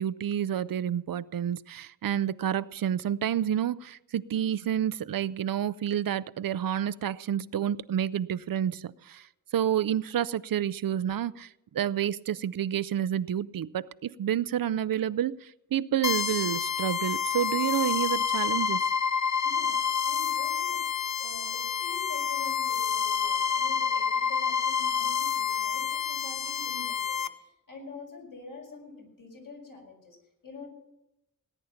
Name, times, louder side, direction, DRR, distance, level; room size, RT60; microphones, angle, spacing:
voice 1, 0.0-9.3 9.5-18.9, right 10 dB, 85° right, 0.5 m, -29 dB
sound 1, 16.0-27.3, left 7 dB, 55° left, 0.7 m, -28 dB
voice 2, 19.4-20.8 21.2-30.7, left 4 dB, 75° left, 5.7 m, -46 dB
18.0 x 10.0 x 5.7 m
wide cardioid pair, 90°, 33 cm